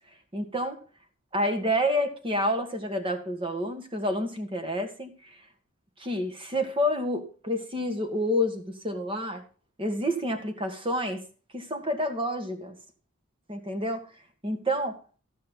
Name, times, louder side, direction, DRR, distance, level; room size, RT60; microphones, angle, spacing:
voice 1, 0.3-0.8 1.3-5.3 6.0-9.4 9.8-11.2 11.5-12.7 13.5-14.0 14.4-15.0, equal, 25° right, 6 dB, 1.7 m, -29 dB
15.0 x 5.5 x 5.5 m, 0.39 s
head